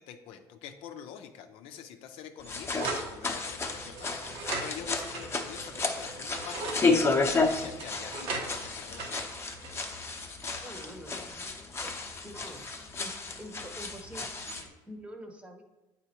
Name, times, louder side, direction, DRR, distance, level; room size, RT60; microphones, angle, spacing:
voice 1, 0.1-9.2 12.4-12.6, left 8 dB, 75° left, 6 dB, 0.5 m, -46 dB
sound 1, 2.4-14.7, left 3 dB, 25° left, 0.8 m, -32 dB
sound 2, 2.8-3.1 4.0-5.8 6.2-6.8 7.8-10.3, right 3 dB, 70° right, 1.3 m, -38 dB
sound 3, 3.6-8.7, right 5 dB, 50° right, 0.5 m, -50 dB
voice 2, 10.6-11.9 12.2-12.7 13.0-15.6, right 1 dB, 10° right, 5 dB, 0.9 m, -46 dB
8.2 x 4.2 x 2.9 m, 1.0 s
supercardioid pair, 85°, 10 cm